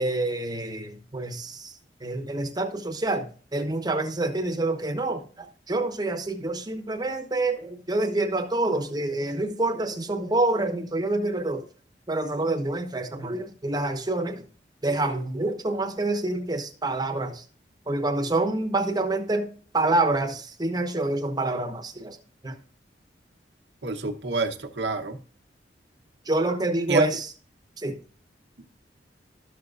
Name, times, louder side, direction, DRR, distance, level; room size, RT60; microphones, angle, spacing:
voice 1, 0.0-1.7 2.0-3.3 3.5-11.6 12.1-14.4 14.8-17.4 17.9-19.5 19.7-22.2 22.4-22.6 26.3-27.3 27.8-28.0, right 2 dB, 20° right, 0.9 m, -27 dB
voice 2, 23.8-25.2 26.9-27.1, right 3 dB, 75° right, 0.9 m, -26 dB
12.5 x 6.4 x 2.4 m
head